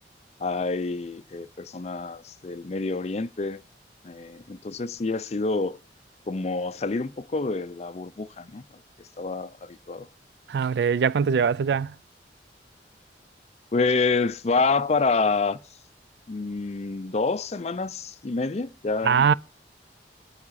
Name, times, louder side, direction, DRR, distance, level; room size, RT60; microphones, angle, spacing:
voice 1, 0.4-3.6 4.0-5.8 6.3-8.6 9.2-10.1 13.7-15.6 16.3-19.3, left 4 dB, 35° left, 0.5 m, -27 dB
voice 2, 10.5-11.9 19.0-19.3, right 6 dB, 65° right, 0.3 m, -22 dB
13.5 x 4.8 x 4.1 m
head